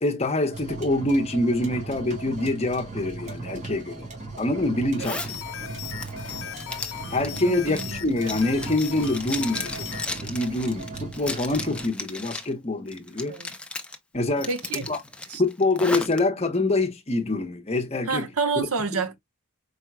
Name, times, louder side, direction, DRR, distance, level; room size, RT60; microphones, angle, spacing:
voice 1, 0.0-4.1 4.4-5.2 7.1-13.4 14.1-14.5 14.7-15.0 15.4-18.3 18.6-18.7, left 2 dB, 30° left, 0.9 m, -25 dB
sound 1, 0.5-11.9, right 3 dB, 30° right, 2.0 m, -38 dB
Zipper (clothing), 5.0-5.3 5.8-12.5 12.9-14.0 14.4-16.2, left 2 dB, 5° left, 0.6 m, -35 dB
sound 2, 5.1-10.1, left 9 dB, 65° left, 0.9 m, -38 dB
voice 2, 7.4-8.1 13.3-13.5 14.5-14.8 15.3-15.4 18.0-19.2, right 4 dB, 70° right, 1.1 m, -29 dB
5.0 x 4.5 x 2.2 m
head